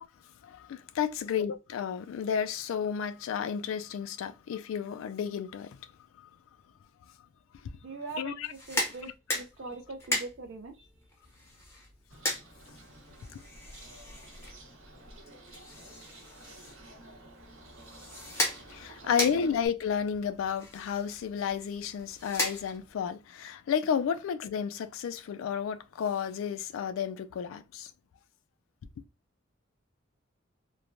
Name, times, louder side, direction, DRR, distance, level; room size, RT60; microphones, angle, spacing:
voice 1, 0.4-5.9 6.2-6.3 8.1-8.5 9.0-9.1 13.3-13.4 18.7-27.9, left 7 dB, 80° left, 0.3 m, -32 dB
voice 2, 7.8-9.1 9.3-10.9 19.0-19.4, right 3 dB, 65° right, 0.4 m, -41 dB
sound 1, 8.4-23.1, left 1 dB, 15° left, 0.5 m, -38 dB
Bird, 12.1-19.7, right 1 dB, 85° right, 0.9 m, -52 dB
3.0 x 2.1 x 2.5 m
head